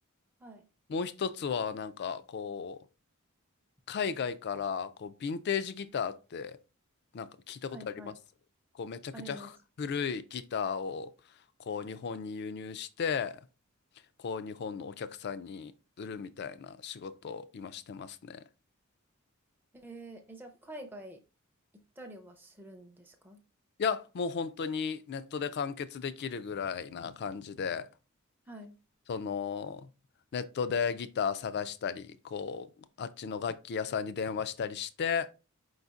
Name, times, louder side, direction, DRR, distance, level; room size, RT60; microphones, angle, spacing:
voice 1, 0.9-2.8 3.9-6.6 7.1-7.8 8.0-8.1 8.7-9.5 9.8-11.1 11.7-13.4 14.2-15.7 16.0-18.4 23.8-27.9 29.1-29.9 30.3-32.7 33.0-35.3, left 6 dB, 50° left, 0.4 m, -35 dB
voice 2, 7.7-8.2 9.1-9.5 19.7-21.2 22.0-23.4 28.5-28.7, right 1 dB, 10° right, 0.5 m, -47 dB
4.9 x 4.0 x 2.4 m
head